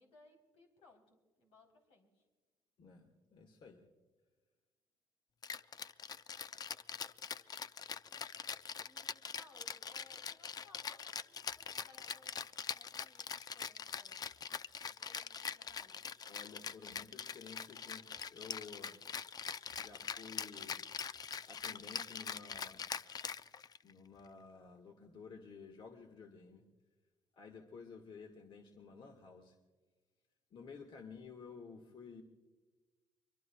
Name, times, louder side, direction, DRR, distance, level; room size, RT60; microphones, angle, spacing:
voice 1, 0.0-2.3 8.8-12.4 12.7-14.2 14.8-16.1, left 3 dB, 85° left, 1 dB, 3.7 m, -64 dB
voice 2, 2.8-3.8 5.4-5.7 16.3-19.0 19.8-20.9 21.5-22.9 23.8-26.6 27.4-29.6 30.5-32.2, left 5 dB, 55° left, 4 dB, 1.6 m, -53 dB
Rattle (instrument), 5.4-23.9, left 6 dB, 40° left, 0.4 m, -43 dB
24.5 x 22.5 x 2.3 m, 1.3 s
cardioid pair, 80°, 10 cm